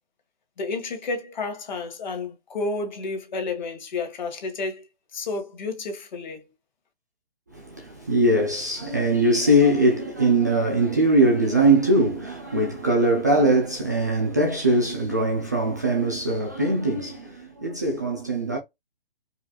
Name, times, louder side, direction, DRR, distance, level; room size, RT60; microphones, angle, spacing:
voice 1, 0.6-4.9 5.1-6.4, left 3 dB, 50° left, 1.5 m, -31 dB
voice 2, 7.5-18.6, right 1 dB, 20° right, 0.4 m, -21 dB
4.7 x 2.5 x 2.2 m
hypercardioid pair, 155°, 29 cm